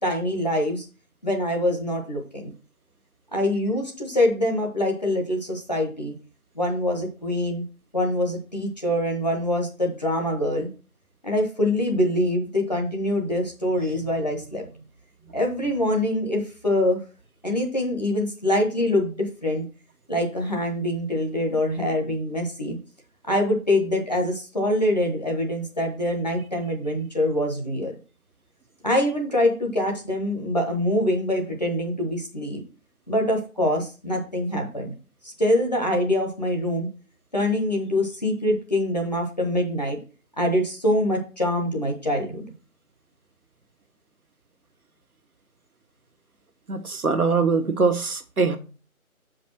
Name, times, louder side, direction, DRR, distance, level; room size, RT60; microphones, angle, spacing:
voice 1, 0.0-0.9 1.2-2.5 3.3-6.1 6.5-7.6 7.9-10.7 11.2-14.7 15.3-17.0 17.4-19.6 20.1-22.8 23.2-27.9 28.8-32.6 33.1-34.9 35.2-36.9 37.3-40.0 40.4-42.5, left 1 dB, 30° left, 1.3 m, -24 dB
voice 2, 46.7-48.6, right 4 dB, 80° right, 1.4 m, -22 dB
6.9 x 5.2 x 4.5 m
figure-of-eight pair, 175°, 44 cm